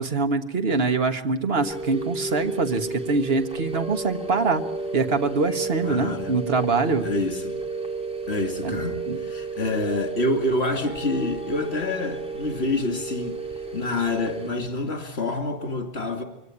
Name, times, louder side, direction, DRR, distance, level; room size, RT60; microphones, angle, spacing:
voice 1, 0.0-4.6 4.9-7.1 8.6-8.8 9.1-9.2, right 4 dB, 70° right, 8 dB, 1.8 m, -24 dB
sound 1, 1.6-14.5, right 3 dB, 5° right, 2.9 m, -32 dB
voice 2, 5.8-6.4 7.0-7.6 8.3-13.4 13.7-16.2, left 2 dB, 80° left, 6 dB, 2.9 m, -27 dB
24.0 x 17.0 x 10.0 m, 0.85 s
omnidirectional pair, 1.1 m